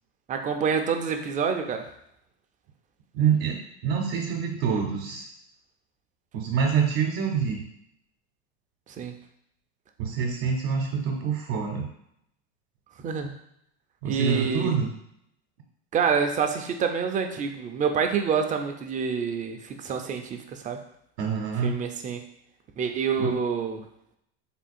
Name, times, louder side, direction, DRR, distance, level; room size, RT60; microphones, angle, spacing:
voice 1, 0.3-1.9 9.0-9.2 13.0-13.3 14.0-14.7 15.9-20.8 21.6-22.2 22.8-23.8, right 6 dB, 25° right, 5 dB, 0.5 m, -27 dB
voice 2, 3.1-5.3 6.3-7.6 10.0-11.9 14.0-14.9 21.2-21.8 23.2-23.3, right 6 dB, 65° right, 1 dB, 0.8 m, -26 dB
3.6 x 2.3 x 4.3 m, 0.75 s
supercardioid pair, 110°, 31 cm